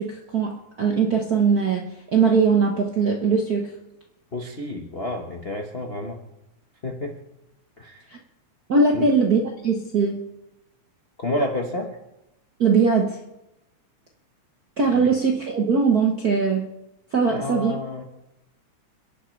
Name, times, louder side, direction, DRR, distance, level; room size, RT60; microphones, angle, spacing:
voice 1, 0.0-1.8 2.1-3.7 8.7-10.2 12.6-13.2 14.8-16.7 17.1-17.8, right 5 dB, 60° right, 0 dB, 1.0 m, -20 dB
voice 2, 4.3-6.2 6.8-7.2 7.8-8.0 8.9-9.1 11.2-11.9 14.9-15.1 17.3-18.0, left 1 dB, 55° left, 1 dB, 0.6 m, -29 dB
30.0 x 11.0 x 3.3 m, 0.91 s
omnidirectional pair, 3.4 m